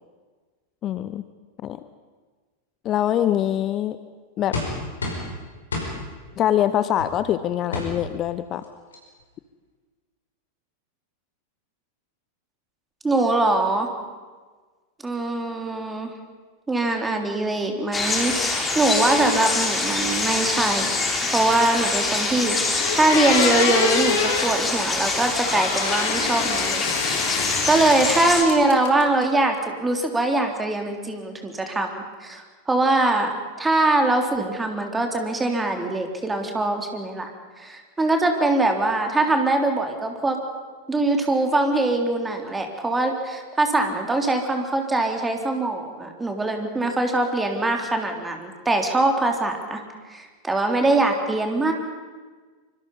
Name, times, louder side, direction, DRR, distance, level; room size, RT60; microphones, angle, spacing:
voice 1, 0.8-1.2 1.6-1.8 2.8-4.0 4.4-4.6 6.4-8.6, left 11 dB, 30° left, 13 dB, 0.8 m, -23 dB
sound 1, 4.5-5.3 5.7-5.9 7.0-7.1 7.7-7.9 8.6-8.7 8.9-9.2, left 2 dB, 70° left, 5.4 m, -28 dB
voice 2, 13.0-13.9 15.0-16.1 16.7-20.9 21.3-22.6 22.9-27.0 27.4-33.3 33.6-37.3 37.6-40.4 40.9-49.8 50.1-51.7, right 2 dB, 10° right, 4 dB, 3.4 m, -22 dB
sound 2, 17.9-28.4, left 3 dB, 15° left, 4.0 m, -25 dB
sound 3, 22.3-22.4 22.8-24.5 25.4-28.2 28.5-29.2, left 5 dB, 55° left, 3.6 m, -26 dB
25.0 x 25.0 x 5.6 m, 1.4 s
figure-of-eight pair, 90°, 0 cm